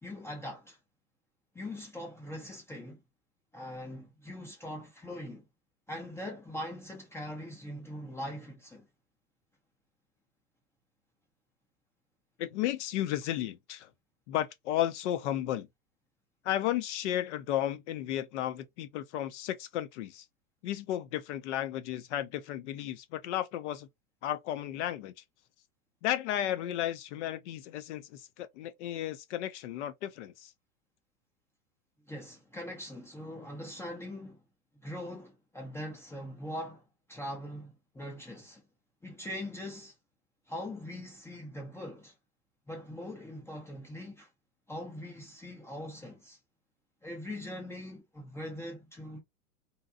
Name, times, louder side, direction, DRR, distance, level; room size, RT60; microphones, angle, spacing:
voice 1, 0.0-0.8 1.5-3.0 3.5-5.4 5.9-8.9 32.1-34.4 34.7-38.6 39.0-39.9 40.5-42.1 42.7-44.3 44.7-46.4 47.0-49.2, left 1 dB, 5° left, 0.5 m, -42 dB
voice 2, 12.4-13.9 14.3-15.7 16.4-20.3 20.6-23.9 24.2-25.2 26.0-30.5, left 12 dB, 55° left, 0.5 m, -33 dB
2.7 x 2.2 x 2.3 m
hypercardioid pair, 105°, 43 cm